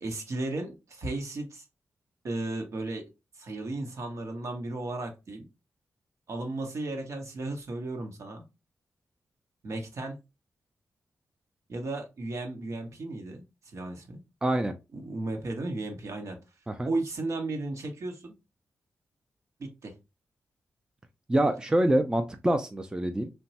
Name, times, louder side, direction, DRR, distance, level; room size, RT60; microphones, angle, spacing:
voice 1, 0.0-1.6 2.2-3.0 3.4-5.5 6.3-8.4 9.6-10.2 11.7-14.2 14.9-16.4 16.8-18.3 19.6-19.9, right 2 dB, 65° right, 0.9 m, -35 dB
voice 2, 14.4-14.7 16.7-16.9 21.3-23.3, right 1 dB, 15° right, 0.4 m, -25 dB
3.0 x 2.2 x 2.7 m
cardioid pair, 70°, 5 cm